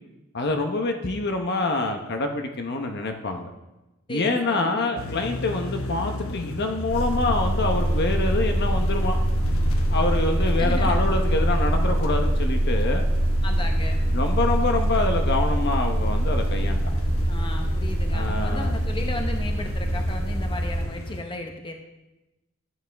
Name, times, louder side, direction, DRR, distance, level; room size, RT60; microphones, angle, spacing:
voice 1, 0.3-3.5 4.1-9.2 9.9-13.0 14.1-17.0 18.1-18.7, left 2 dB, 55° left, 4 dB, 0.9 m, -26 dB
voice 2, 4.1-4.9 10.6-11.0 13.4-14.0 17.3-21.7, left 2 dB, 25° left, 4 dB, 1.0 m, -35 dB
sound 1, 5.0-21.2, left 1 dB, 85° left, 1.0 m, -35 dB
sound 2, 6.9-20.8, right 1 dB, 30° right, 1.9 m, -24 dB
12.5 x 8.6 x 3.5 m, 0.99 s
head